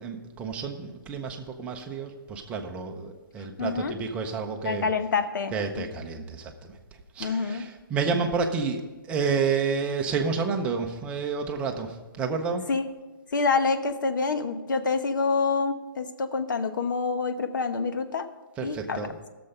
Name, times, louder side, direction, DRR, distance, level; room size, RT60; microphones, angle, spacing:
voice 1, 0.0-4.9 5.5-6.8 7.2-12.7 18.6-19.2, right 5 dB, 10° right, 3 dB, 0.7 m, -30 dB
voice 2, 3.6-3.9 4.6-5.5 7.2-7.6 12.7-12.9 13.3-18.2 18.6-19.0, left 4 dB, 60° left, 8 dB, 1.1 m, -27 dB
16.0 x 6.9 x 5.4 m, 1.2 s
hypercardioid pair, 165°, 12 cm